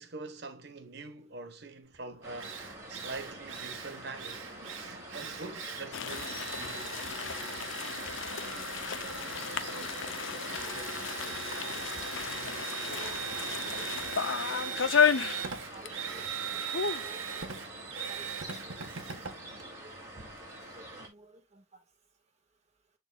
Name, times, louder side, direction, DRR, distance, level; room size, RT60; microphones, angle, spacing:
voice 1, 0.0-6.8, right 3 dB, 55° right, 1.3 m, -44 dB
Drill, 1.9-2.0 2.4-20.5, right 6 dB, 75° right, 1.6 m, -40 dB
sound 1, 2.2-21.1, right 1 dB, 15° right, 2.9 m, -47 dB
sound 2, 5.9-16.0 16.3-16.4 16.7-17.1, left 6 dB, 70° left, 0.6 m, -33 dB
voice 2, 8.9-9.3 9.7-10.9 11.1-11.3 11.6-13.9 14.2-17.5 18.0-18.4 18.6-19.3 19.5-19.9 20.5-21.8, right 2 dB, 35° right, 1.8 m, -54 dB
11.5 x 4.1 x 2.4 m
head